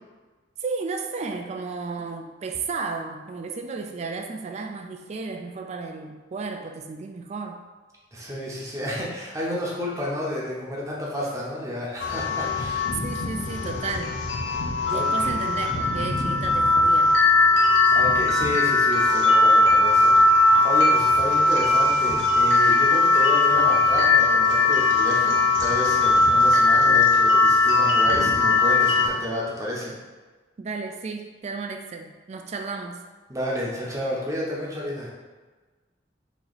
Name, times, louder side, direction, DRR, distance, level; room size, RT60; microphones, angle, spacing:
voice 1, 0.6-7.6 13.0-14.2 14.9-17.2 30.6-33.0, right 4 dB, 35° right, 5 dB, 0.3 m, -33 dB
voice 2, 8.1-12.9 14.5-15.4 17.9-29.9 33.3-35.1, equal, 15° right, -5 dB, 0.8 m, -31 dB
sound 1, 12.0-29.1, left 2 dB, 80° left, 0.7 m, -19 dB
3.0 x 2.7 x 4.0 m, 1.3 s
head